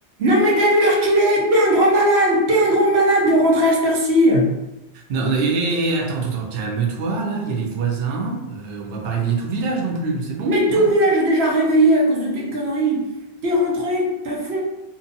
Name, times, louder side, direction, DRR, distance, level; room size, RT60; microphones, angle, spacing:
voice 1, 0.2-4.5 10.4-13.1 13.4-14.6, right 1 dB, 80° right, -2 dB, 1.0 m, -17 dB
voice 2, 4.9-10.8, right 4 dB, 65° right, 0 dB, 0.7 m, -24 dB
2.6 x 2.3 x 2.6 m, 0.94 s
omnidirectional pair, 1.1 m